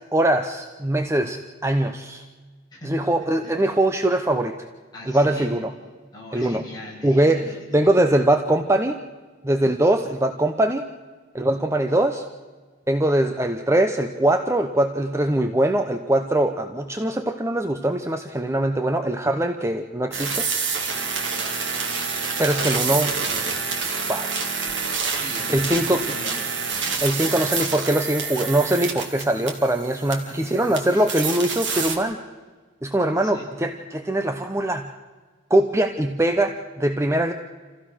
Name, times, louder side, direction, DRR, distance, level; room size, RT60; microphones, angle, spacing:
voice 1, 0.1-2.2 2.8-4.6 5.1-5.7 6.3-6.6 7.0-9.0 9.4-10.9 11.3-12.2 12.9-20.5 22.4-23.2 24.1-24.3 25.5-26.0 27.0-32.2 32.8-34.9 35.5-37.3, right 1 dB, 15° right, 6 dB, 0.8 m, -22 dB
voice 2, 2.7-3.1 3.4-3.5 4.9-5.5 6.1-7.9 25.2-26.4 26.9-27.5 30.2-31.1 33.1-33.4, left 1 dB, 20° left, -4 dB, 7.3 m, -40 dB
sound 1, 20.1-32.0, right 5 dB, 80° right, 2.8 m, -27 dB
27.5 x 15.5 x 6.3 m, 1.4 s
head